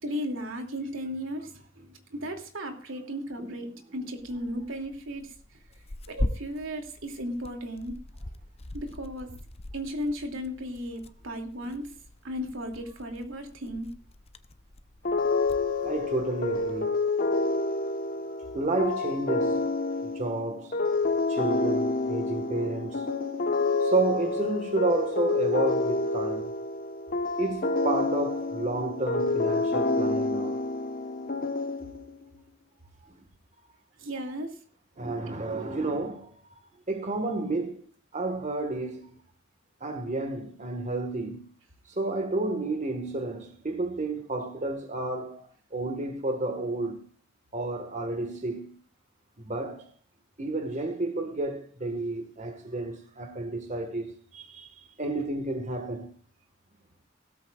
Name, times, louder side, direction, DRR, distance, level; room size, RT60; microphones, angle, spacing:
voice 1, 0.0-5.3 6.1-8.0 8.7-9.3 9.7-11.9 12.2-13.9 34.0-34.6 35.5-35.8, equal, 85° right, 2.7 m, -35 dB
Tearing, 4.2-16.8, left 1 dB, 30° left, 0.7 m, -41 dB
sound 1, 15.0-32.2, left 3 dB, 50° left, 1.2 m, -28 dB
voice 2, 15.8-17.1 18.5-19.7 20.0-20.8 21.3-23.1 23.8-26.6 27.4-30.6 35.0-36.3 36.9-39.2 39.8-41.4 41.9-47.0 47.5-48.7 49.4-49.9 50.4-56.1, right 2 dB, 40° right, 1.7 m, -31 dB
16.5 x 14.0 x 2.5 m
head